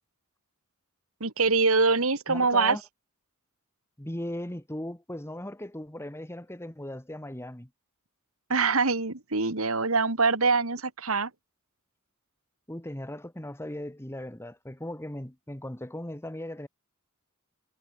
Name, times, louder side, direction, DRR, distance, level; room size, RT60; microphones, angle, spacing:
voice 1, 1.2-2.8 8.5-11.3, right 4 dB, 70° right, 2.3 m, -24 dB
voice 2, 2.3-2.8 4.0-7.7 12.7-16.7, left 1 dB, 10° left, 1.6 m, -38 dB
head